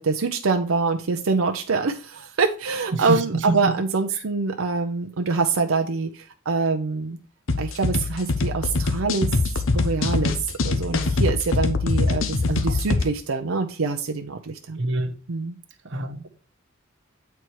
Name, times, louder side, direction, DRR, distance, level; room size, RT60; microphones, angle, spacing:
voice 1, 0.0-7.2 7.6-9.3 9.7-14.8 15.3-15.6, right 4 dB, 85° right, 0.7 m, -25 dB
sound 1, 7.5-13.0, left 3 dB, 70° left, 0.8 m, -23 dB
voice 2, 14.8-15.1 15.8-16.3, right 2 dB, 60° right, 1.0 m, -25 dB
8.2 x 4.4 x 4.6 m
head